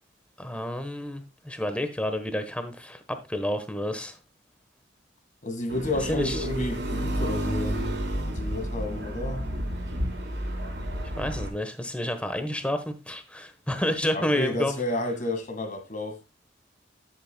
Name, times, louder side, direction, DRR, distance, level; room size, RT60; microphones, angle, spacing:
voice 1, 0.4-4.2 6.1-6.5 11.2-14.8, left 1 dB, 5° left, 1.1 m, -30 dB
voice 2, 5.4-8.0 8.3-9.4 14.1-16.2, left 2 dB, 45° left, 1.9 m, -31 dB
sound 1, 5.7-11.5, equal, 70° right, 3.2 m, -30 dB
10.0 x 8.6 x 2.2 m
head